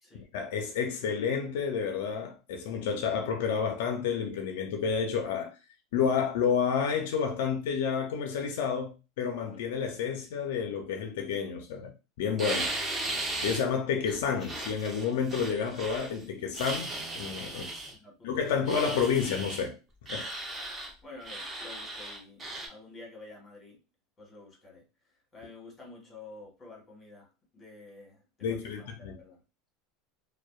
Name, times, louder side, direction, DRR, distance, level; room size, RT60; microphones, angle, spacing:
voice 1, 0.3-5.5 5.9-11.9 12.2-12.7 13.4-17.7 18.2-19.8 20.1-20.3 28.4-29.2, left 6 dB, 80° left, 0.4 m, -30 dB
sound 1, 12.4-13.6 14.1-16.2 16.5-17.9 18.7-19.6 20.1-20.9 21.2-22.7, right 2 dB, 20° right, 0.7 m, -36 dB
voice 2, 17.5-18.7 20.8-23.8 24.2-24.8 25.3-29.4, left 3 dB, 20° left, 1.3 m, -50 dB
2.6 x 2.1 x 2.3 m
supercardioid pair, 135°, 0 cm